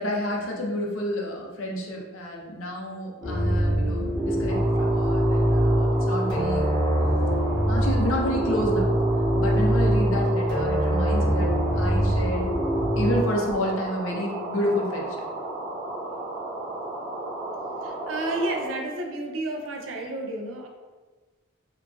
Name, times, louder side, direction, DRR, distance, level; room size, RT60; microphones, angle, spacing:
voice 1, 0.0-6.7 7.7-9.0 9.3-12.6 13.0-15.2, equal, 85° left, -1 dB, 0.6 m, -30 dB
sound 1, 3.2-13.2, equal, 20° left, 0.9 m, -23 dB
sound 2, 4.5-18.7, right 2 dB, 30° right, 0.9 m, -34 dB
voice 2, 17.8-20.7, right 2 dB, 75° right, 2 dB, 0.4 m, -31 dB
2.9 x 2.4 x 2.4 m, 1.3 s
head